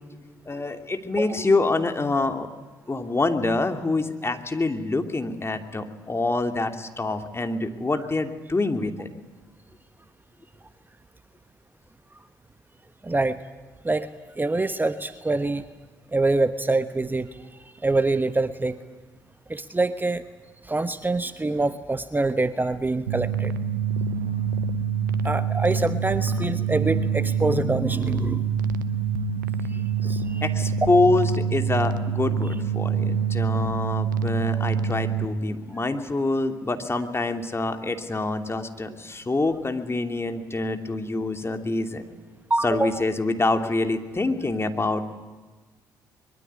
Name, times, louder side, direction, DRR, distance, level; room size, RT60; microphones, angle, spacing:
voice 1, 0.5-2.5 2.9-9.1 30.4-42.0 42.6-45.1, left 2 dB, 25° left, 6 dB, 2.9 m, -26 dB
voice 2, 13.0-13.4 13.8-14.1 14.4-15.6 16.1-17.3 17.8-18.8 19.5-20.2 20.7-23.5 25.2-28.5 30.0-30.4 42.5-42.9, right 2 dB, 20° right, 12 dB, 1.2 m, -25 dB
sound 1, 23.1-35.3, right 6 dB, 90° right, 0.8 m, -26 dB
23.5 x 23.0 x 9.8 m, 1.3 s
hypercardioid pair, 45°, 10 cm